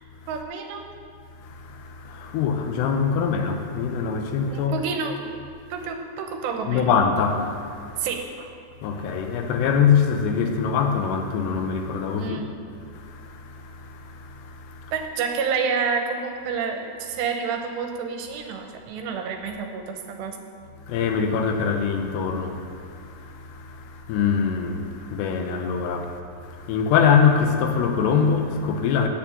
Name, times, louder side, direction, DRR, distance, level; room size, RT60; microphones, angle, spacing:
voice 1, 0.3-0.8 4.5-5.3 5.7-7.0 8.0-8.5 12.1-12.5 14.9-20.4, right 5 dB, 90° right, 3.1 m, -29 dB
voice 2, 1.4-4.8 6.7-8.1 8.8-12.5 12.9-14.9 20.8-29.1, left 6 dB, 80° left, 2.9 m, -24 dB
8.7 x 7.3 x 8.6 m
omnidirectional pair, 4.9 m